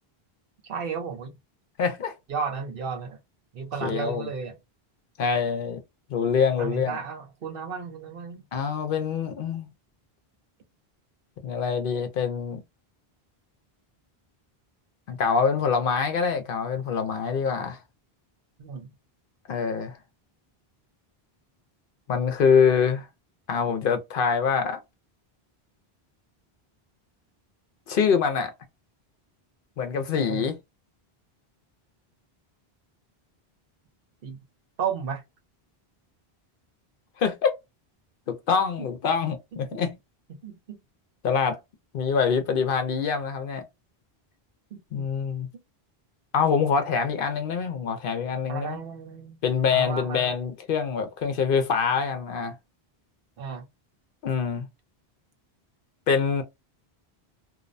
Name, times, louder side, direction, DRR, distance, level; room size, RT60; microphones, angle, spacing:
voice 1, 0.6-1.3 2.3-3.2 3.5-4.5 6.6-8.4 18.6-18.9 30.3-30.5 34.2-34.4 34.8-35.2 38.8-38.9 39.5-39.8 40.3-40.8 44.7-45.0 48.5-49.4 49.7-50.3 53.4-53.6, right 6 dB, 65° right, 0.9 m, -33 dB
voice 2, 1.8-2.1 3.8-4.3 5.2-5.8 6.1-7.0 8.5-9.7 11.4-12.6 15.1-17.8 19.5-20.0 22.1-23.1 23.5-24.8 27.9-28.5 29.8-30.6 37.2-37.5 38.3-40.0 41.2-41.6 41.9-43.6 44.9-45.5 46.3-48.8 49.4-52.5 54.2-54.7 56.1-56.4, left 6 dB, 65° left, 0.7 m, -25 dB
2.6 x 2.1 x 2.5 m
omnidirectional pair, 1.0 m